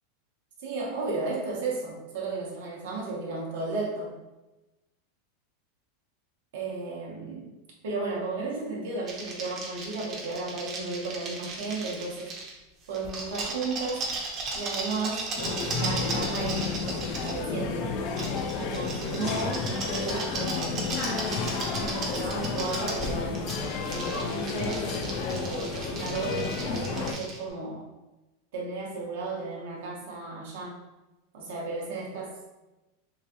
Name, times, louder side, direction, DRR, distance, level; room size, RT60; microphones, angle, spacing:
voice 1, 0.6-4.1 6.5-7.5 7.8-12.3 12.9-14.1 14.5-17.9 18.6-21.3 21.7-23.5 23.9-24.9 25.3-27.9 28.5-30.8 31.3-32.5, right 3 dB, 75° right, -3 dB, 0.8 m, -34 dB
sound 1, 9.1-12.5 12.9-17.4 18.2-27.4, right 3 dB, 30° right, 0.6 m, -36 dB
sound 2, 15.4-27.1, left 4 dB, 45° left, 0.3 m, -31 dB
3.0 x 2.5 x 2.7 m, 1.0 s
supercardioid pair, 155°, 0 cm